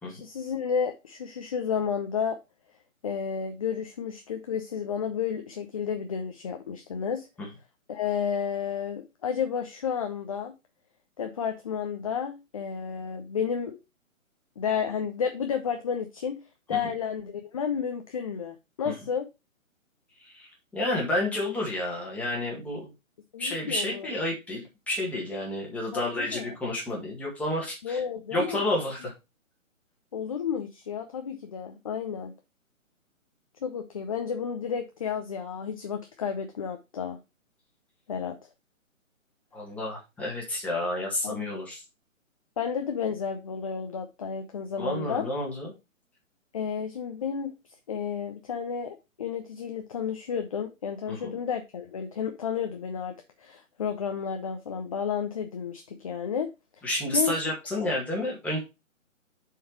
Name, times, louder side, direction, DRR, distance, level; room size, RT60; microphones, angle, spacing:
voice 1, 0.1-2.4 3.0-7.3 7.9-10.5 11.2-13.8 14.6-16.4 16.7-19.3 23.3-24.1 25.9-26.5 27.8-28.6 30.1-32.3 33.6-37.2 38.1-38.4 41.2-41.4 42.6-45.3 46.5-47.5 47.9-53.1 53.4-56.5 57.1-57.4, left 7 dB, 25° left, 0.6 m, -31 dB
voice 2, 20.2-22.9 23.4-28.0 28.3-29.1 39.5-41.8 44.8-45.7 51.1-51.3 56.8-58.6, left 1 dB, 5° left, 1.9 m, -30 dB
7.4 x 4.7 x 4.6 m
figure-of-eight pair, 145°, 41 cm